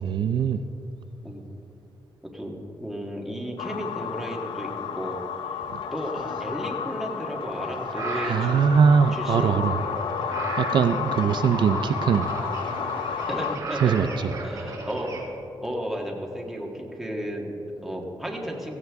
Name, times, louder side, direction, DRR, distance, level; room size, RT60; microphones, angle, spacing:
voice 1, 0.0-0.6 5.7-5.8 8.2-9.8 10.6-12.3 13.8-14.4, right 6 dB, 65° right, 10 dB, 0.4 m, -22 dB
voice 2, 2.3-5.2 5.9-8.6 9.1-9.6 13.3-14.0 14.4-15.1 15.6-18.8, equal, ahead, -2 dB, 1.5 m, -33 dB
sound 1, 3.6-13.6, left 8 dB, 90° left, 0.5 m, -32 dB
sound 2, 7.2-15.2, right 3 dB, 45° right, 2.5 m, -35 dB
16.0 x 15.0 x 3.5 m, 2.8 s
wide cardioid pair, 170°, 8 cm